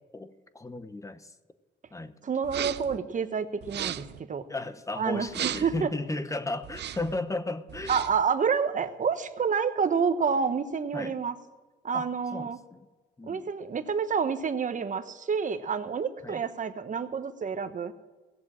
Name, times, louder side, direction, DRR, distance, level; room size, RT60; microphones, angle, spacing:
voice 1, 0.1-1.4 1.9-2.2 4.5-8.0 10.9-11.2 11.9-12.9 13.2-13.4 16.2-16.4, left 2 dB, 15° left, 12 dB, 0.9 m, -35 dB
voice 2, 2.2-4.4 5.0-5.9 7.9-11.3 11.8-12.6 13.3-17.9, right 6 dB, 40° right, 10 dB, 1.1 m, -28 dB
sound 1, 2.4-3.0 3.6-4.2 5.3-5.8 6.6-7.2 7.7-8.2, right 11 dB, 60° right, 0.6 m, -35 dB
17.5 x 7.5 x 7.5 m, 1.3 s
cardioid pair, 90°, 20 cm